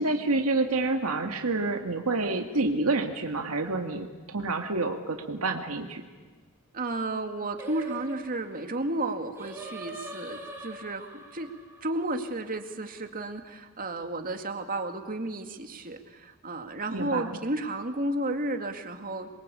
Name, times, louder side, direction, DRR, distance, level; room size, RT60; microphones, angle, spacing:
voice 1, 0.0-6.1 16.9-17.4, right 2 dB, 80° right, 4 dB, 2.0 m, -28 dB
voice 2, 6.7-11.5 11.8-19.3, right 2 dB, 40° right, 6 dB, 2.3 m, -32 dB
Singing, 7.6-12.9, right 1 dB, 10° right, 4.7 m, -43 dB
27.0 x 23.0 x 8.5 m, 1.4 s
head